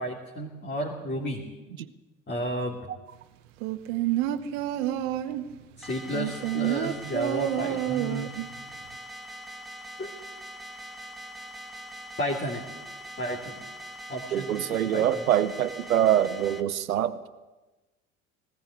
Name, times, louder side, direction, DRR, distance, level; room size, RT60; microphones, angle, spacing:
voice 1, 0.0-1.4 2.3-2.8 5.8-8.3 10.0-10.1 12.2-12.6 13.2-13.6 14.1-15.2, equal, 25° left, -1 dB, 3.1 m, -32 dB
sound 1, 3.6-5.5 6.1-8.5 8.8-8.9, right 13 dB, 65° right, 1.2 m, -28 dB
sound 2, 5.8-16.6, equal, ahead, 1.8 m, -42 dB
voice 2, 14.3-17.3, right 11 dB, 85° right, 13 dB, 0.8 m, -24 dB
19.5 x 16.5 x 8.0 m, 1.1 s
hypercardioid pair, 70°, 40 cm